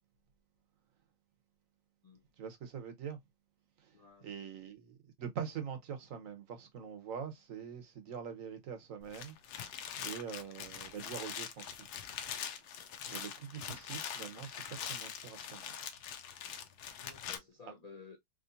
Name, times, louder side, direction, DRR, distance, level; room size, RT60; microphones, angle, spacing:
voice 1, 2.4-3.2 4.2-9.7 10.0-11.8 12.4-12.5 13.1-15.8, right 7 dB, 60° right, 1.2 m, -44 dB
voice 2, 3.9-4.3 13.0-13.2 16.9-18.2, left 5 dB, 70° left, 0.3 m, -54 dB
sound 1, 9.0-17.4, left 8 dB, 85° left, 1.2 m, -43 dB
3.7 x 3.1 x 2.5 m
omnidirectional pair, 1.6 m